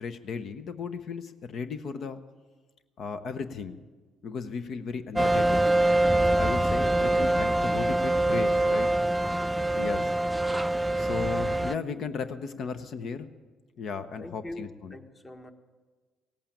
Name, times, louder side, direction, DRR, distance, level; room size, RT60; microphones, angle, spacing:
voice 1, 0.0-2.2 3.0-3.8 4.2-5.6 6.2-8.9 9.8-10.1 11.0-13.3 13.8-15.0, left 5 dB, 60° left, 10 dB, 0.8 m, -35 dB
sound 1, 5.2-11.7, right 1 dB, 10° right, 0.4 m, -24 dB
voice 2, 14.2-15.5, left 1 dB, 25° left, 6 dB, 1.5 m, -42 dB
17.0 x 8.6 x 8.6 m, 1.4 s
hypercardioid pair, 60°, 0 cm